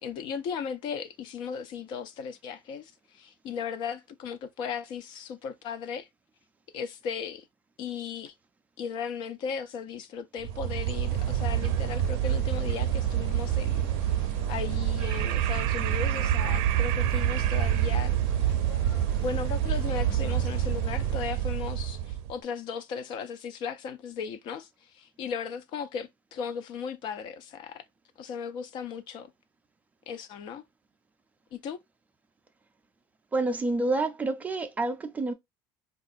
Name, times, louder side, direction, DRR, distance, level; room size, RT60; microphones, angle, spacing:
voice 1, 0.0-6.1 6.7-7.4 7.8-8.3 8.8-13.8 14.1-18.2 19.2-24.7 24.9-27.8 28.2-29.3 30.1-30.6 31.5-31.8, left 6 dB, 50° left, 0.5 m, -36 dB
sound 1, 10.4-22.3, right 11 dB, 75° right, 0.5 m, -27 dB
sound 2, 11.1-21.3, left 5 dB, 85° left, 1.0 m, -47 dB
voice 2, 33.3-35.3, right 2 dB, 15° right, 0.4 m, -28 dB
3.6 x 2.4 x 2.4 m
cardioid pair, 160°, 10 cm